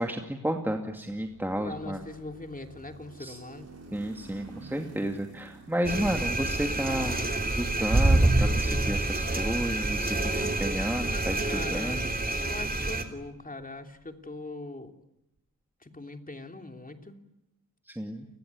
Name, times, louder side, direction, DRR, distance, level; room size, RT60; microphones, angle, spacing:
voice 1, 0.0-2.0 3.2-3.4 3.9-7.3 7.5-12.5 17.9-18.3, equal, 5° right, 3 dB, 2.4 m, -32 dB
sound 1, 1.0-14.1, right 3 dB, 40° right, 6.0 m, -52 dB
voice 2, 1.6-3.7 11.1-12.0 12.4-14.9 15.8-17.2, left 2 dB, 20° left, 5 dB, 3.1 m, -41 dB
sound 2, 5.8-13.0, right 2 dB, 25° right, 3.3 m, -27 dB
29.0 x 21.0 x 9.6 m, 0.90 s
wide cardioid pair, 85°, 37 cm